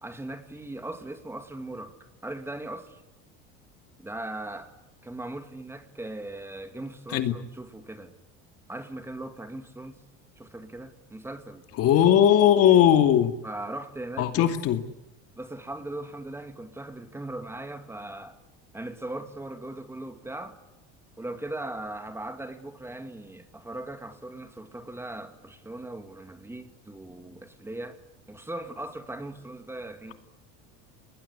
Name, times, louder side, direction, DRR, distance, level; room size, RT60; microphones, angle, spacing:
voice 1, 0.0-1.9 2.2-3.0 4.0-4.7 5.0-8.1 8.7-10.0 10.4-11.6 13.4-14.5 15.3-18.4 18.7-20.6 21.2-28.0 28.3-30.1, right 2 dB, 10° right, 2.4 m, -39 dB
voice 2, 11.8-13.4 14.2-14.8, left 10 dB, 55° left, 2.6 m, -19 dB
29.0 x 20.0 x 9.8 m
cardioid pair, 135°, 29 cm